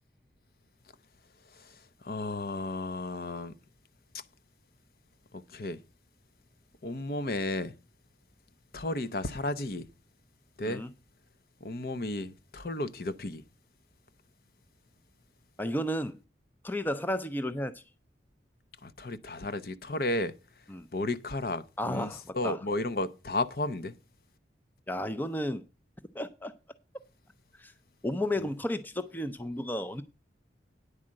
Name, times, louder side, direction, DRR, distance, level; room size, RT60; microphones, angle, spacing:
voice 1, 1.4-3.6 4.1-4.2 5.3-5.8 6.8-7.8 8.7-9.9 10.6-10.8 11.6-13.4 18.8-20.6 20.9-24.0 28.4-28.5, left 2 dB, 55° left, 0.7 m, -33 dB
voice 2, 15.6-16.2 16.6-17.8 20.7-20.9 21.8-22.6 24.9-25.6 26.1-26.5 27.5-27.7 28.0-30.0, left 1 dB, 10° left, 0.5 m, -33 dB
9.7 x 4.9 x 7.5 m
head